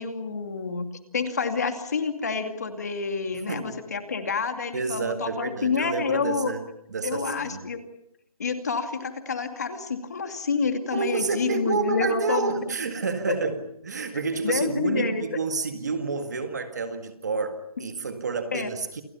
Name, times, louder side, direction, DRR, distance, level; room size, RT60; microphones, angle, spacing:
voice 1, 0.0-6.5 7.0-7.8 8.4-12.6 14.4-15.2 18.5-18.7, left 5 dB, 30° left, 7 dB, 2.5 m, -28 dB
voice 2, 4.7-6.6 6.9-7.6 10.9-19.0, right 4 dB, 30° right, 7 dB, 2.0 m, -29 dB
29.5 x 29.0 x 5.7 m, 0.74 s
hypercardioid pair, 180°, 19 cm